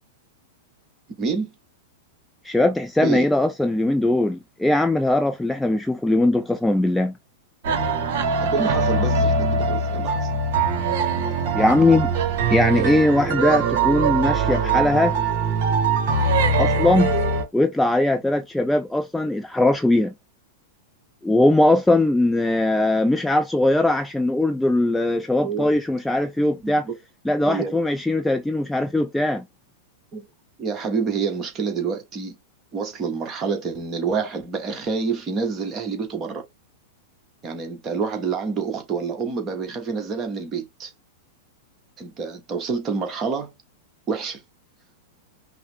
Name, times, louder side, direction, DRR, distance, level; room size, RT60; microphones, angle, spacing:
voice 1, 1.2-1.5 3.0-3.3 8.4-10.3 25.4-25.7 26.6-26.9 27.5-27.8 30.1-30.2 30.6-32.4 32.7-36.4 37.4-40.9 42.0-43.5 44.1-44.4, right 5 dB, 25° right, 1.3 m, -27 dB
voice 2, 2.4-7.1 11.5-12.1 12.5-15.2 16.6-17.2 17.5-20.1 21.2-26.9 27.3-29.4, left 1 dB, 5° left, 0.4 m, -20 dB
sound 1, 7.6-17.4, right 4 dB, 50° right, 1.1 m, -22 dB
5.5 x 2.2 x 3.4 m
figure-of-eight pair, 95°, 0 cm